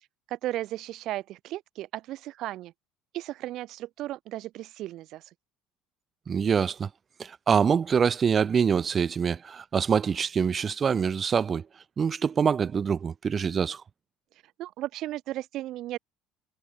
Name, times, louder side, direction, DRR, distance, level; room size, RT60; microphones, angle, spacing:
voice 1, 0.3-2.7 3.1-5.2 14.6-16.0, right 15 dB, 55° right, 3.0 m, -35 dB
voice 2, 6.3-6.9 7.2-11.6 12.0-13.8, right 6 dB, 25° right, 3.3 m, -25 dB
cardioid pair, 150°, 0 cm